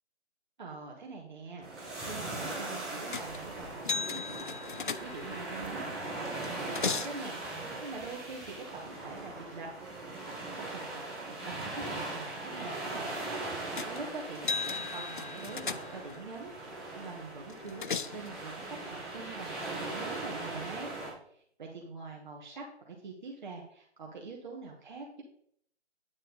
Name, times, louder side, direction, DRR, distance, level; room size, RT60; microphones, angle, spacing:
voice 1, 0.6-9.7 10.2-13.2 13.5-20.9 21.3-25.1, right 3 dB, 40° right, -1 dB, 1.7 m, -45 dB
sound 1, 1.6-21.1, right 2 dB, ahead, 0.9 m, -40 dB
sound 2, 3.1-3.4 3.8-5.5 6.2-7.2 13.8-14.0 14.3-16.2 17.5-18.3, left 5 dB, 50° left, 0.5 m, -36 dB
9.3 x 7.5 x 4.0 m, 0.65 s
figure-of-eight pair, 150°, 34 cm